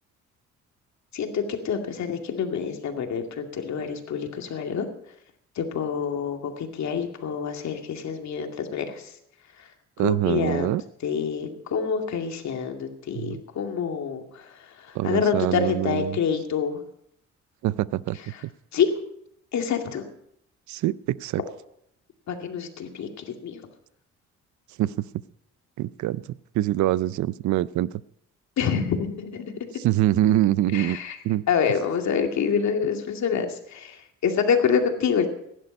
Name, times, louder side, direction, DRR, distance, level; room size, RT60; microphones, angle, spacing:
voice 1, 1.1-4.9 5.6-9.1 9.6-9.7 10.0-10.7 11.0-16.8 18.3-18.4 18.7-18.9 19.5-20.0 22.3-23.6 28.6-29.4 30.7-31.2 31.5-35.3, left 6 dB, 65° left, 4 dB, 2.4 m, -27 dB
voice 2, 10.0-10.8 13.1-13.4 14.9-16.2 17.6-18.2 20.7-21.4 24.8-25.1 25.8-28.0 29.8-31.0 31.2-31.4, right 14 dB, 70° right, 19 dB, 0.5 m, -24 dB
16.0 x 11.0 x 5.4 m, 0.72 s
cardioid pair, 90°, 30 cm